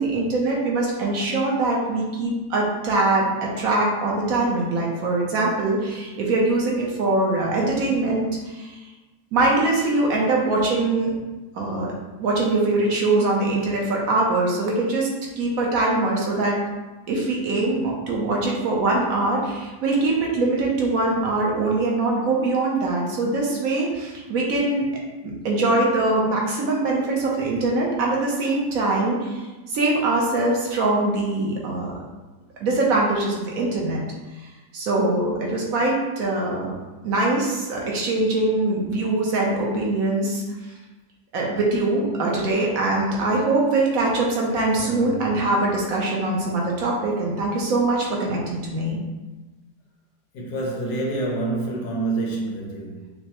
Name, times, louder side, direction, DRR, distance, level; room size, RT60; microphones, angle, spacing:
voice 1, 0.0-8.8 9.3-11.2 11.5-11.9 12.2-15.1 15.4-16.6 17.1-24.9 25.2-31.9 32.6-34.0 34.7-36.7 37.0-40.4 41.3-49.0, right 2 dB, 65° right, -2 dB, 1.1 m, -22 dB
voice 2, 44.8-45.4 50.3-53.1, right 2 dB, 90° left, -2 dB, 1.5 m, -28 dB
5.3 x 2.0 x 2.9 m, 1.2 s
omnidirectional pair, 1.7 m